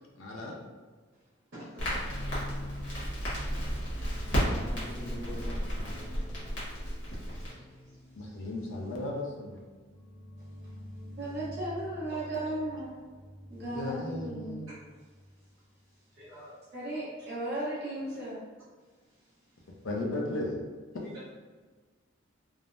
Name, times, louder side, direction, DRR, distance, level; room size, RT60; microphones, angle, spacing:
voice 1, 0.2-0.6 8.1-9.6 13.6-14.8 18.0-18.2 19.8-20.6 20.9-21.0, left 1 dB, 80° left, -1 dB, 0.5 m, -35 dB
voice 2, 1.1-3.0 7.0-8.5 10.4-11.5 12.1-12.2 13.5-13.6 14.7-16.7 18.8-19.8 21.0-21.3, equal, 85° right, -13 dB, 0.9 m, -53 dB
Crackle, 1.8-7.5, equal, 60° left, 1.1 m, -33 dB
sound 1, 2.1-15.3 15.6-15.8 16.2-16.3, left 1 dB, 40° left, 0.8 m, -48 dB
voice 3, 4.4-6.6, equal, 5° right, -4 dB, 0.4 m, -45 dB
voice 4, 11.2-13.0 13.5-14.6 16.7-18.4, right 1 dB, 55° right, -7 dB, 0.8 m, -35 dB
3.3 x 2.0 x 2.5 m, 1.4 s
head